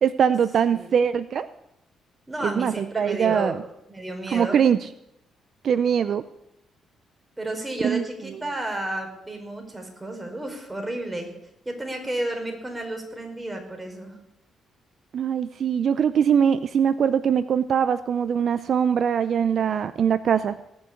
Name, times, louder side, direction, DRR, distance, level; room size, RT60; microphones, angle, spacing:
voice 1, 0.0-1.5 2.4-3.6 4.3-4.9 5.6-6.2 7.8-8.0 15.1-20.6, right 7 dB, 60° right, 13 dB, 0.5 m, -22 dB
voice 2, 2.3-3.6 3.9-4.6 7.4-11.3 11.6-14.2, right 1 dB, 15° right, 3 dB, 4.5 m, -32 dB
19.0 x 6.4 x 8.4 m, 0.85 s
cardioid pair, 80°, 0 cm